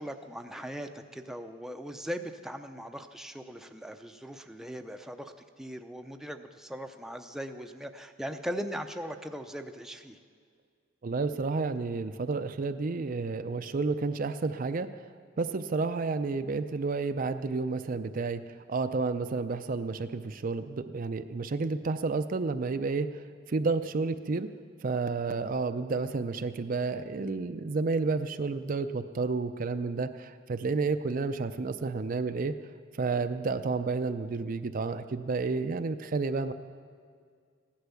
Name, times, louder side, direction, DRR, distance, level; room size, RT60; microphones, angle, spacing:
voice 1, 0.0-10.2, equal, ahead, 5 dB, 0.6 m, -39 dB
voice 2, 11.0-14.9 15.4-18.4 18.7-23.1 23.5-24.5 24.8-32.6 33.0-36.5, right 4 dB, 45° right, 9 dB, 0.5 m, -31 dB
16.0 x 11.5 x 7.0 m, 2.1 s
head